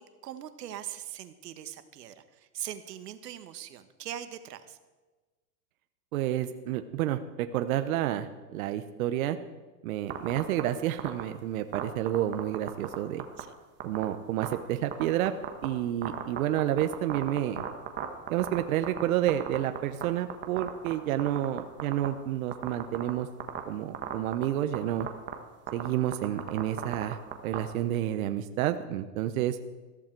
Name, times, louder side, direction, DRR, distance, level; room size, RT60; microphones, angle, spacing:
voice 1, 0.0-4.8 13.4-13.5, right 11 dB, 90° right, 10 dB, 1.3 m, -41 dB
voice 2, 6.1-9.4 9.8-13.2 13.8-15.3 15.6-17.6 18.3-23.3 23.7-25.1 25.7-29.6, right 12 dB, 60° right, 9 dB, 0.9 m, -30 dB
sound 1, 10.1-10.6 11.0-11.2 11.7-12.9 13.2-13.4 13.8-14.0 14.4-14.5 14.9-15.7 16.0-19.0 19.3-20.0 20.3-20.9 21.2-22.1 22.5-23.1 23.4-23.6 23.9-24.4 24.7-24.8 25.0-25.3 25.7-27.6, right 11 dB, 25° right, 1.4 m, -33 dB
14.5 x 13.5 x 4.5 m, 1.2 s
supercardioid pair, 150°, 47 cm